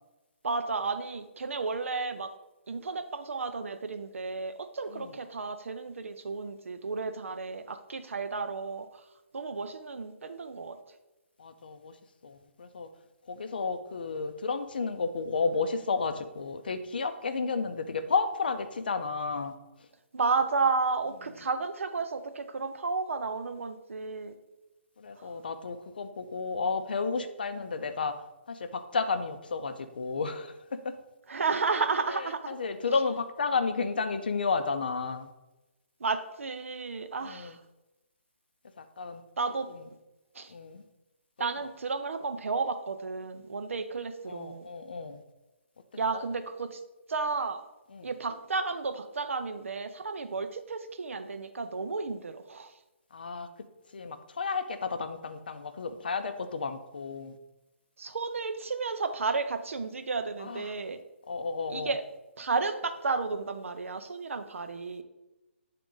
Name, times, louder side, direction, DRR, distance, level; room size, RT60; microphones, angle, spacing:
voice 1, 0.4-2.3 2.7-9.0 9.3-10.8 20.1-24.3 25.2-25.3 31.3-32.6 36.0-37.6 39.4-39.7 40.3-40.5 41.4-44.7 46.0-46.8 47.1-47.6 48.0-52.7 58.0-61.0 61.7-62.1 62.4-65.0, right 4 dB, 80° right, 8 dB, 0.6 m, -32 dB
voice 2, 11.4-11.9 12.2-12.9 13.3-19.5 25.0-28.1 28.5-30.6 30.8-30.9 32.1-35.3 37.2-37.5 38.8-39.2 40.5-40.8 41.4-41.5 44.3-45.2 46.1-46.2 47.9-48.1 53.1-53.5 53.9-57.4 60.4-60.6 61.3-61.9, left 4 dB, 45° left, 9 dB, 0.5 m, -32 dB
8.2 x 3.8 x 3.8 m, 1.0 s
hypercardioid pair, 180°, 7 cm